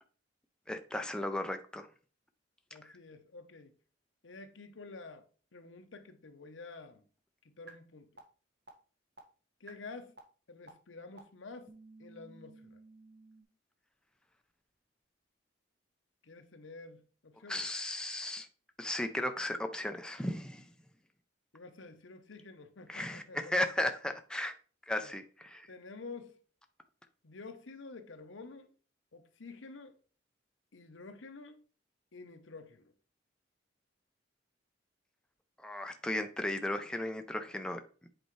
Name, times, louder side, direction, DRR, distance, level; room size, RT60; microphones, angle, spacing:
voice 1, 0.7-1.9 2.8-3.0 17.5-18.5 18.8-20.7 22.9-24.5 24.9-25.7 35.6-37.8, left 1 dB, 5° left, 0.4 m, -35 dB
voice 2, 2.7-3.7 4.2-5.2 5.5-7.1 7.4-8.2 9.6-10.2 10.5-11.7 12.0-12.8 16.2-17.7 21.5-23.5 25.0-25.2 25.7-26.4 27.2-28.7 29.1-30.0 30.7-31.6 32.1-32.9, left 3 dB, 85° left, 0.8 m, -49 dB
sound 1, 7.7-7.8 8.2-8.3 8.7-8.8 9.2-9.3 9.7-9.8 10.2-10.3 10.7-10.8 11.2-11.3 11.7-13.4, right 3 dB, 60° right, 1.4 m, -54 dB
7.9 x 4.4 x 3.1 m
head